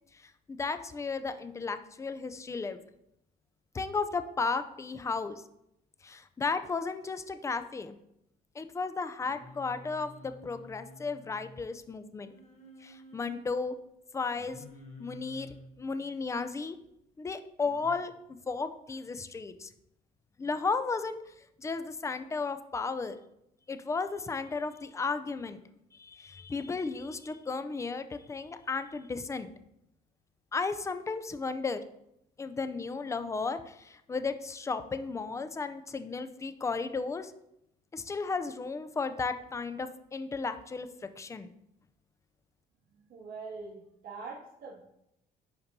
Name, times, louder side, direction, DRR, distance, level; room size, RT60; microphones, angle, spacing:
voice 1, 0.2-2.8 3.7-5.4 6.0-7.9 8.6-12.3 12.8-13.8 14.1-14.6 15.0-16.8 17.2-18.1 18.5-19.7 20.4-21.2 21.6-23.2 23.7-25.6 25.9-29.5 30.5-31.8 32.4-37.3 37.9-41.5, left 4 dB, 15° left, 10 dB, 0.4 m, -34 dB
Singing, 9.2-11.6 12.3-13.4 14.3-15.7 17.6-17.9, left 2 dB, 40° left, 1.1 m, -51 dB
voice 2, 43.1-44.8, right 4 dB, 60° right, -4 dB, 2.0 m, -43 dB
10.5 x 4.2 x 2.7 m, 0.81 s
cardioid pair, 110°, 17 cm